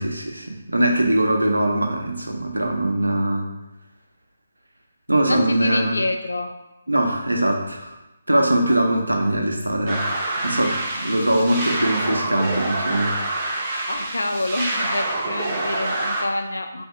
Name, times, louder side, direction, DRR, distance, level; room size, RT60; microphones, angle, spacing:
voice 1, 0.0-3.5 5.1-6.0 6.9-8.0 8.3-10.2 10.4-13.1, right 1 dB, 90° right, 1 dB, 0.7 m, -21 dB
voice 2, 5.3-6.5 11.4-11.7 13.9-16.8, left 1 dB, 75° left, 5 dB, 0.5 m, -27 dB
sound 1, 9.9-16.2, right 2 dB, 20° right, 0.7 m, -26 dB
3.2 x 2.7 x 4.5 m, 0.98 s
figure-of-eight pair, 150°, 0 cm